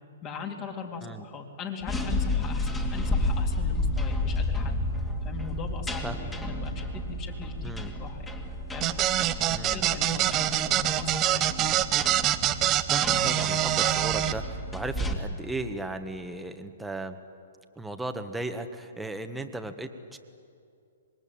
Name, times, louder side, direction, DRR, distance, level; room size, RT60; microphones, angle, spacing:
voice 1, 0.2-4.7 5.2-8.3 8.7-8.9 9.4-11.7, left 5 dB, 30° left, 2 dB, 3.7 m, -40 dB
sound 1, 1.8-15.1, left 1 dB, 10° left, 2.6 m, -31 dB
voice 2, 6.0-6.4 7.6-8.0 9.5-9.8 12.9-17.2 17.7-20.2, right 2 dB, 5° right, 6 dB, 1.5 m, -36 dB
sound 2, 8.8-14.3, right 12 dB, 25° right, 0.9 m, -25 dB
25.5 x 21.5 x 8.9 m, 2.5 s
hypercardioid pair, 125°, 0 cm